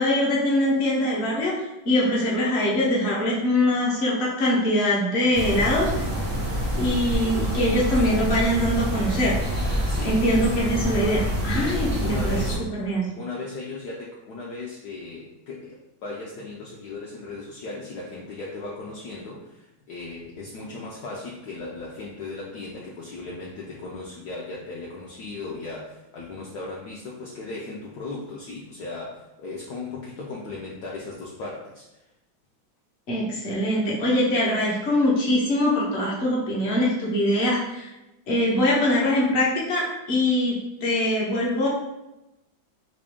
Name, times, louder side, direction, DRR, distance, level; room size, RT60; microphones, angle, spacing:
voice 1, 0.0-1.5 1.8-5.9 6.7-9.3 10.0-12.2 12.8-13.1 33.1-37.9 38.3-41.7, left 1 dB, 45° left, -4 dB, 0.9 m, -23 dB
sound 1, 5.3-12.6, equal, 15° right, 0.4 m, -26 dB
voice 2, 9.9-10.2 11.5-12.6 13.2-31.9, left 3 dB, 70° left, -4 dB, 1.0 m, -37 dB
3.3 x 2.6 x 3.5 m, 0.97 s
omnidirectional pair, 2.1 m